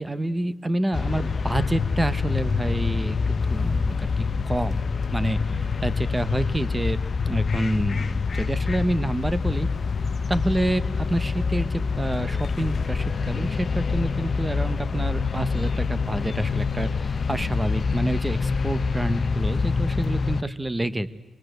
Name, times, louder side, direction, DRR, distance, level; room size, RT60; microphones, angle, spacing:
voice 1, 0.0-4.8 5.1-7.0 7.2-9.7 10.3-21.1, right 1 dB, 10° right, 14 dB, 1.0 m, -28 dB
sound 1, 0.9-20.4, left 5 dB, 40° left, 0.8 m, -26 dB
25.5 x 21.5 x 7.9 m, 1.3 s
wide cardioid pair, 145°, 0 cm